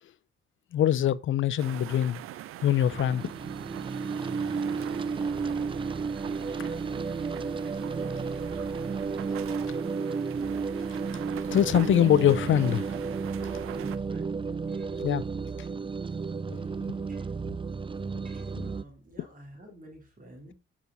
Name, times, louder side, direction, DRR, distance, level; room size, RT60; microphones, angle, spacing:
voice 1, 0.7-2.2 2.6-3.3 11.5-12.9 15.0-15.2 16.5-16.6, left 11 dB, 70° left, 0.6 m, -23 dB
sound 1, 1.6-14.0, right 13 dB, 85° right, 0.6 m, -42 dB
sound 2, 2.9-18.8, right 5 dB, 25° right, 0.5 m, -32 dB
voice 2, 7.8-8.5 13.7-14.4 14.7-15.0 17.1-17.3 18.2-20.5, right 1 dB, 40° right, 3.5 m, -49 dB
8.2 x 6.1 x 4.1 m
supercardioid pair, 60°, 21 cm